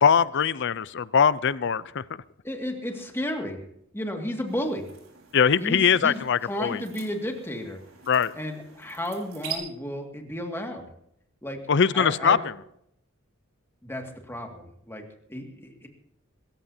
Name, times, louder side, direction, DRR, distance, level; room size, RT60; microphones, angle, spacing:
voice 1, 0.0-2.0 5.3-6.8 8.1-8.3 11.7-12.4, left 7 dB, 60° left, 18 dB, 0.6 m, -21 dB
voice 2, 2.4-3.6 3.9-4.9 5.6-7.8 8.3-10.8 11.4-11.6 11.9-12.4 13.8-15.9, left 1 dB, 10° left, 3 dB, 2.1 m, -33 dB
sound 1, 4.5-9.6, right 10 dB, 80° right, 4.7 m, -43 dB
25.5 x 14.5 x 2.8 m, 0.73 s
head